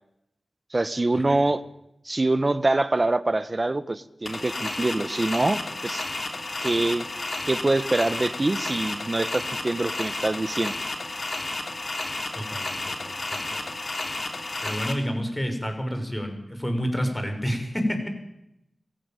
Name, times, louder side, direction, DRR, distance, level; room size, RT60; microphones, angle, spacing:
voice 1, 0.7-1.6 2.0-6.0 6.6-7.1 7.5-10.7, right 2 dB, 40° right, 14 dB, 1.4 m, -25 dB
sound 1, 4.3-14.9, left 2 dB, 55° left, 3.7 m, -32 dB
voice 2, 12.3-13.7 14.6-18.1, equal, 20° left, 5 dB, 6.8 m, -29 dB
23.5 x 17.5 x 9.3 m, 0.81 s
cardioid pair, 50°, 0 cm